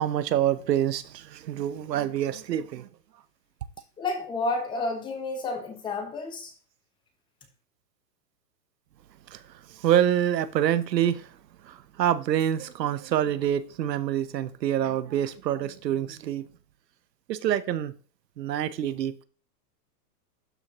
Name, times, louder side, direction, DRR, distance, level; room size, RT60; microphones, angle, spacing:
voice 1, 0.0-2.9 9.3-11.4 11.6-16.4 17.3-17.9 18.4-19.2, right 10 dB, 90° right, 0.8 m, -26 dB
voice 2, 4.0-6.5, left 3 dB, 10° left, 0.9 m, -30 dB
12.0 x 4.5 x 2.9 m
hypercardioid pair, 155°, 48 cm